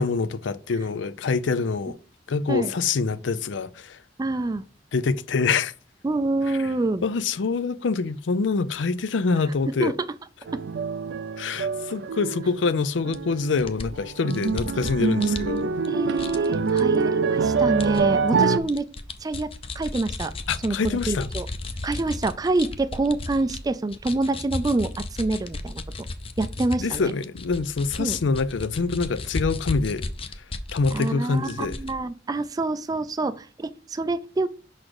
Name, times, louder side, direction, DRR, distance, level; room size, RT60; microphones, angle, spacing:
voice 1, 0.0-2.0 2.3-4.0 4.9-5.7 6.5-6.7 7.0-9.9 11.4-15.7 20.5-21.3 26.8-30.0 30.4-30.5 30.7-31.8, left 4 dB, 85° left, 0.5 m, -25 dB
voice 2, 4.2-4.6 6.0-7.1 9.8-9.9 15.9-18.9 19.2-19.5 19.7-20.3 20.6-21.5 21.8-25.8 26.4-27.1 28.0-28.2 30.9-34.5, right 2 dB, 20° right, 0.4 m, -26 dB
sound 1, 10.5-12.8 13.0-13.6 13.9-18.6, right 5 dB, 70° right, 0.5 m, -25 dB
sound 2, 13.1-13.2 13.6-15.9 16.2-16.8 17.8-18.0 18.4-23.6 23.9-31.1 31.4-31.9, left 2 dB, 30° left, 0.6 m, -34 dB
6.0 x 4.2 x 4.8 m
head